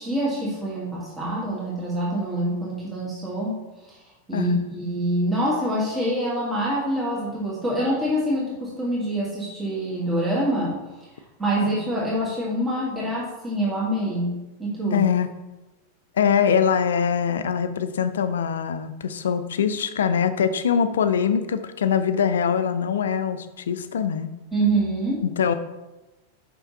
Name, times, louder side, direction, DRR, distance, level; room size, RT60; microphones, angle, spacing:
voice 1, 0.0-4.0 4.3-11.1 11.4-14.3 14.6-15.0 24.5-25.2, right 1 dB, 15° right, -6 dB, 1.8 m, -26 dB
voice 2, 4.3-4.6 11.6-11.7 14.9-15.3 16.2-24.3 25.2-25.5, left 7 dB, 65° left, 11 dB, 0.5 m, -23 dB
5.6 x 5.3 x 4.1 m, 1.1 s
figure-of-eight pair, 90°, 0 cm